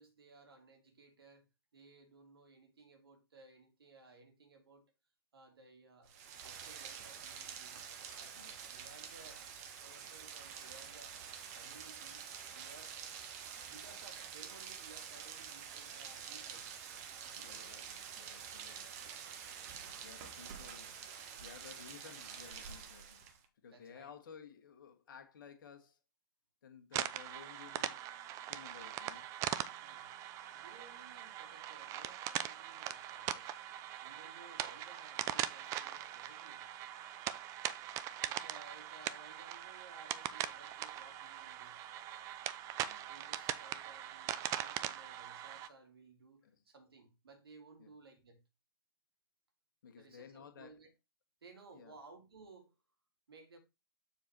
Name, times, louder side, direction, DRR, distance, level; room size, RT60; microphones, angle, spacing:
voice 1, 0.0-1.5 1.7-4.9 5.3-6.1 6.4-9.4 9.8-13.0 13.6-16.7 17.2-17.6 23.7-24.1 29.8-30.1 30.5-33.5 34.0-36.6 38.2-41.8 43.1-48.4 50.0-50.9 51.4-52.8 53.3-53.6, right 3 dB, 70° right, 2.4 m, -59 dB
Rain, 6.1-23.5, right 7 dB, 40° right, 1.2 m, -48 dB
voice 2, 17.4-19.1 20.0-21.0 21.4-26.0 26.6-28.0 28.4-29.4 42.8-43.1 46.4-46.6 47.8-47.9 49.8-50.7 51.7-51.9, left 7 dB, 55° left, 1.6 m, -56 dB
sound 1, 26.9-45.7, right 12 dB, 25° right, 0.5 m, -41 dB
7.1 x 4.0 x 4.5 m
figure-of-eight pair, 115°, 13 cm